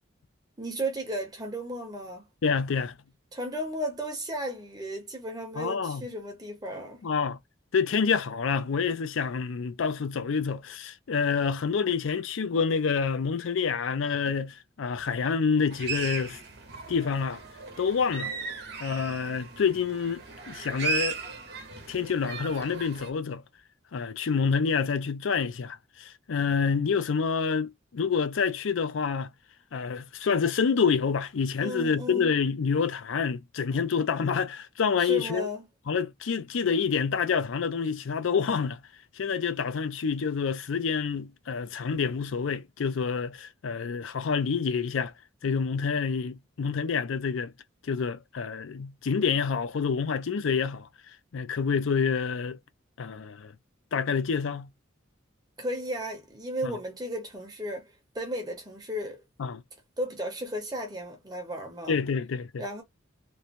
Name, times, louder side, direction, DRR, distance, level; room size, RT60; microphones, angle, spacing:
voice 1, 0.6-2.3 3.3-7.0 31.6-32.3 35.0-35.6 55.6-59.2 60.0-62.0 62.6-62.8, equal, 20° right, 0.8 m, -34 dB
voice 2, 2.4-3.0 5.6-6.0 7.0-7.4 7.7-16.4 16.9-17.4 17.8-18.3 18.8-21.2 21.9-23.4 23.9-29.3 29.7-35.5 35.9-38.8 39.2-45.1 45.4-47.5 47.8-50.9 51.3-52.6 53.0-53.5 53.9-54.7 56.6-56.7 59.4-59.6 61.9-62.6, left 5 dB, 75° left, 0.4 m, -27 dB
sound 1, 15.7-23.1, right 5 dB, 55° right, 1.0 m, -36 dB
3.1 x 2.1 x 2.5 m
head